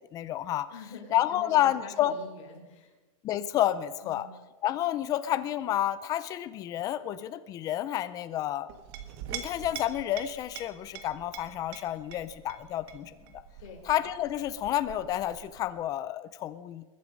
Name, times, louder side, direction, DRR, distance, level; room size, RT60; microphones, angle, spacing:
voice 1, 0.1-0.7 1.1-2.1 3.2-4.3 4.6-8.7 9.3-13.1 13.8-16.8, left 12 dB, 20° left, 14 dB, 0.5 m, -30 dB
voice 2, 0.7-2.9 4.0-4.3 13.6-13.9, left 4 dB, 60° left, 2 dB, 4.1 m, -46 dB
Chink clink, 8.7-15.8, right 9 dB, 45° right, 1.6 m, -44 dB
21.5 x 9.6 x 5.3 m, 1.2 s
supercardioid pair, 160°, 18 cm